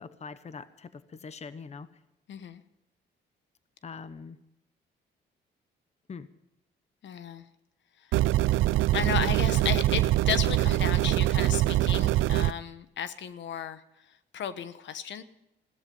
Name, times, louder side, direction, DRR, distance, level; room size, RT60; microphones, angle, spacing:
voice 1, 0.0-1.9 3.8-4.4 6.1-6.3, left 5 dB, 35° left, 13 dB, 1.0 m, -43 dB
voice 2, 2.3-2.6 7.0-7.5 8.0-8.1 8.9-15.2, left 8 dB, 65° left, 12 dB, 1.1 m, -34 dB
sound 1, 8.1-12.5, right 15 dB, 85° right, 0.4 m, -24 dB
17.0 x 13.0 x 5.4 m, 0.86 s
cardioid pair, 90°, 20 cm